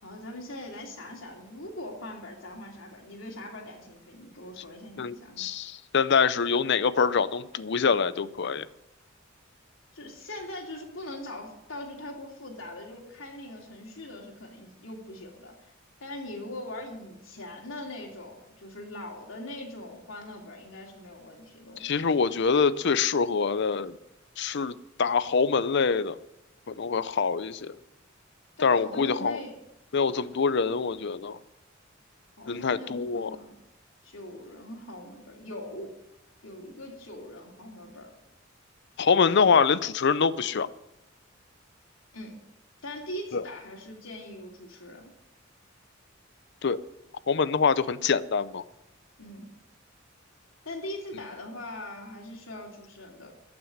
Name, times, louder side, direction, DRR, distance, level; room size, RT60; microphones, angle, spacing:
voice 1, 0.0-5.4 9.9-15.7 16.0-22.0 28.6-29.6 32.4-33.6 34.0-35.9 36.4-38.1 42.1-42.3 42.8-45.0 49.2-49.5 50.6-53.3, left 1 dB, 85° left, 0 dB, 2.9 m, -41 dB
voice 2, 5.0-8.7 21.8-23.9 24.4-26.2 26.7-27.7 28.6-29.4 29.9-31.4 32.5-33.3 39.0-40.7 43.3-43.4 46.6-46.8 47.3-48.6, left 5 dB, 60° left, 16 dB, 0.6 m, -25 dB
14.5 x 6.2 x 9.8 m, 0.90 s
head